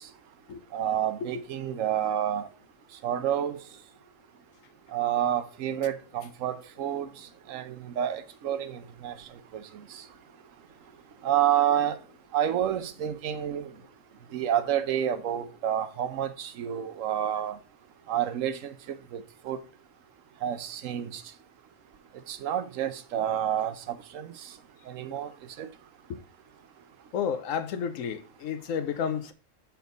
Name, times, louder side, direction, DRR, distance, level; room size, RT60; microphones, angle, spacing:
voice 1, 0.7-2.4 3.0-3.6 4.9-7.1 7.5-9.1 11.2-12.0 12.3-13.7 14.3-17.6 18.1-18.7 19.1-19.6 20.4-21.2 22.3-24.3 24.9-25.3 25.6-25.7, right 10 dB, 80° right, 1.1 m, -29 dB
voice 2, 27.1-29.3, left 7 dB, 85° left, 1.1 m, -31 dB
6.9 x 4.7 x 3.9 m
omnidirectional pair, 1.3 m